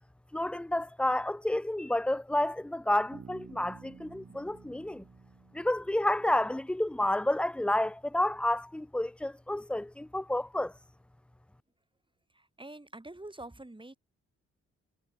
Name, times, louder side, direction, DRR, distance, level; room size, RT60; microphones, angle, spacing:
voice 1, 0.3-5.1 5.5-10.7, left 1 dB, 5° left, 0.3 m, -30 dB
Bass guitar, 3.1-6.8, right 6 dB, 45° right, 1.3 m, -53 dB
voice 2, 12.3-14.0, right 2 dB, 15° right, 7.5 m, -46 dB
supercardioid pair, 55°, 31 cm